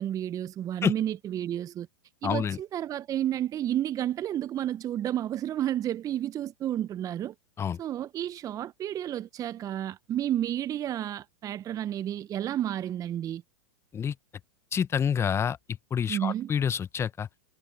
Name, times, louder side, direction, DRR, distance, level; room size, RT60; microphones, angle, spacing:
voice 1, 0.0-1.9 2.2-7.3 7.8-13.4 16.1-16.5, right 11 dB, 25° right, 0.8 m, -31 dB
voice 2, 2.2-2.6 7.6-7.8 13.9-14.1 14.7-15.6 15.9-17.3, left 7 dB, 20° left, 1.0 m, -27 dB
hypercardioid pair, 105°, 13 cm